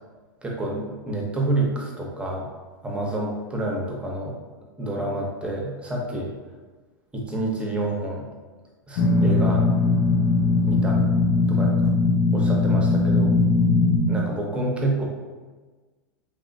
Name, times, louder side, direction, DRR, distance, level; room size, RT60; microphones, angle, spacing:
voice 1, 0.4-2.5 2.8-4.4 4.8-6.3 7.1-8.2 8.9-9.7 10.6-11.1 11.5-11.9 12.3-13.3 14.1-15.0, right 2 dB, 10° right, -2 dB, 0.6 m, -28 dB
sound 1, 9.0-14.0, left 3 dB, 50° left, 0.4 m, -20 dB
3.1 x 2.1 x 2.6 m, 1.3 s
hypercardioid pair, 110°, 11 cm